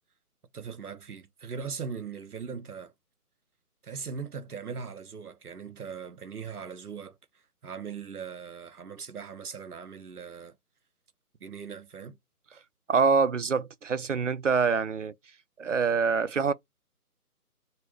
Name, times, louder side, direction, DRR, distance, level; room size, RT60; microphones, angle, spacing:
voice 1, 0.5-2.9 3.8-7.2 7.6-10.5 11.4-12.2, right 6 dB, 70° right, 0.9 m, -39 dB
voice 2, 12.9-15.1 15.6-16.5, right 5 dB, 55° right, 0.5 m, -25 dB
4.3 x 2.2 x 3.2 m
figure-of-eight pair, 150°, 46 cm